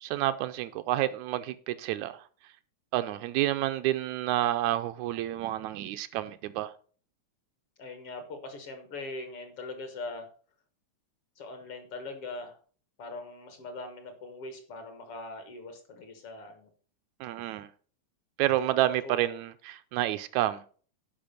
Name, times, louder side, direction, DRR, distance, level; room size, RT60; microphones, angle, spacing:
voice 1, 0.0-2.2 2.9-6.7 17.2-17.7 18.4-20.7, right 14 dB, 80° right, 1.9 m, -29 dB
voice 2, 7.8-10.3 11.4-12.6 13.0-16.7 18.6-19.2, left 2 dB, 55° left, 1.9 m, -41 dB
10.5 x 5.1 x 5.3 m
omnidirectional pair, 3.4 m